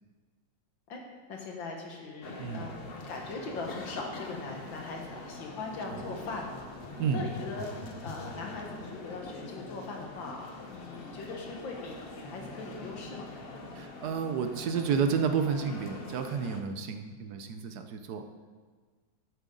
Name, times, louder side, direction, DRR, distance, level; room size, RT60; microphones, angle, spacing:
voice 1, 1.3-6.7 7.1-7.7 8.0-13.3, left 3 dB, 90° left, 0 dB, 2.1 m, -40 dB
sound 1, 2.2-16.6, left 2 dB, 50° left, 0.7 m, -43 dB
voice 2, 13.7-18.2, right 6 dB, 65° right, 7 dB, 1.1 m, -31 dB
11.0 x 8.8 x 3.8 m, 1.5 s
omnidirectional pair, 2.0 m